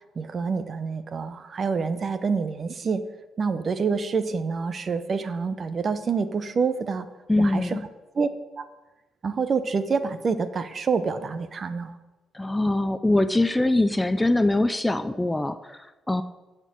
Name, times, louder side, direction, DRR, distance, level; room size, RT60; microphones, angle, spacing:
voice 1, 0.2-3.0 3.4-7.1 7.4-7.8 8.1-8.3 8.6-8.7 9.2-12.0, right 5 dB, 45° right, 12 dB, 0.8 m, -27 dB
voice 2, 7.3-7.8 12.3-16.2, left 2 dB, 10° left, 11 dB, 0.5 m, -23 dB
10.5 x 4.5 x 7.6 m, 1.1 s
cardioid pair, 90°, 0 cm